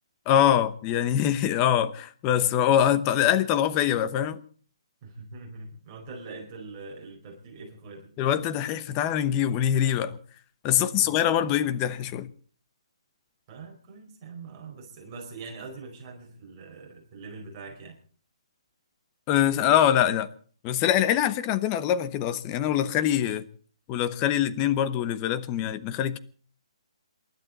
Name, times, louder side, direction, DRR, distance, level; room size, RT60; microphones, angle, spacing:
voice 1, 0.3-4.4 8.2-10.2 10.6-12.3 19.3-20.3 20.6-23.4 23.9-26.2, left 10 dB, 20° left, 0.9 m, -24 dB
voice 2, 5.0-8.1 10.8-11.1 13.5-18.0, right 4 dB, 25° right, 4.8 m, -43 dB
27.5 x 12.0 x 4.1 m
hypercardioid pair, 165°, 3 cm